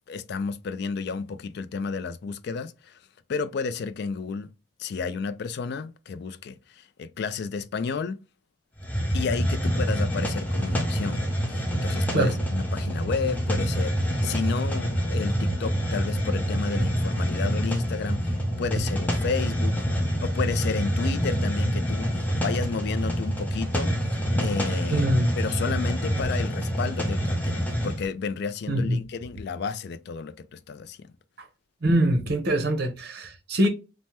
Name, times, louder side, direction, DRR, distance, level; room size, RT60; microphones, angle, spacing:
voice 1, 0.1-3.0 3.3-4.5 4.8-8.2 9.1-25.1 25.4-31.0, left 5 dB, 55° left, 0.3 m, -32 dB
Hiss, 8.8-28.1, equal, 10° left, 0.6 m, -26 dB
voice 2, 24.9-25.4 28.7-29.0 31.8-33.7, right 1 dB, 55° right, 0.7 m, -23 dB
3.3 x 2.1 x 2.8 m
head